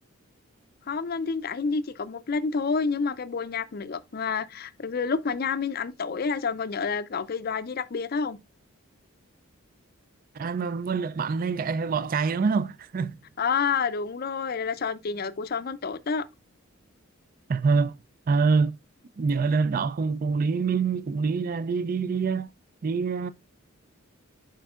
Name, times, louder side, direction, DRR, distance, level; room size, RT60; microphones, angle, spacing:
voice 1, 0.9-8.4 13.4-16.2, left 5 dB, 45° left, 0.5 m, -29 dB
voice 2, 10.4-13.2 17.5-18.0 18.3-18.8 19.2-22.5 22.8-23.3, right 4 dB, 40° right, 0.3 m, -25 dB
10.5 x 4.5 x 2.4 m
head